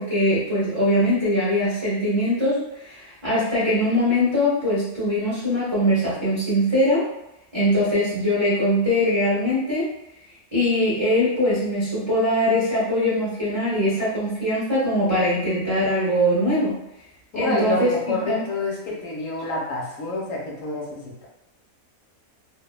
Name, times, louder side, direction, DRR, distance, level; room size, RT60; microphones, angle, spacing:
voice 1, 0.0-7.0 7.5-9.8 10.5-16.7 17.3-18.4, equal, 30° right, -10 dB, 0.6 m, -22 dB
voice 2, 17.3-21.3, left 2 dB, 70° left, -2 dB, 0.9 m, -28 dB
2.7 x 2.1 x 2.2 m, 0.87 s
omnidirectional pair, 1.5 m